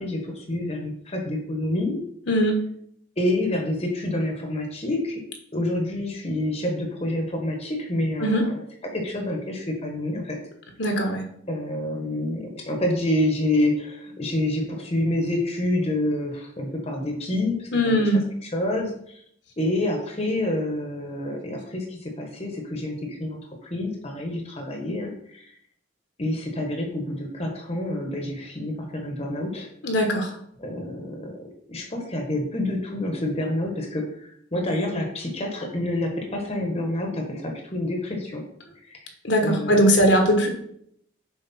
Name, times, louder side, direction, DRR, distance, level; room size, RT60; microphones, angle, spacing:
voice 1, 0.0-2.0 3.2-5.2 5.5-8.6 8.9-10.4 11.5-18.0 18.4-19.2 19.6-23.4 23.7-25.5 26.2-29.7 30.6-31.3 31.7-38.4 38.8-39.1 39.4-39.9, left 1 dB, 30° left, 2 dB, 1.1 m, -28 dB
voice 2, 10.8-11.2 17.7-18.2 29.8-30.3 39.2-40.5, equal, 60° left, 3 dB, 1.3 m, -20 dB
7.2 x 5.1 x 4.2 m, 0.69 s
head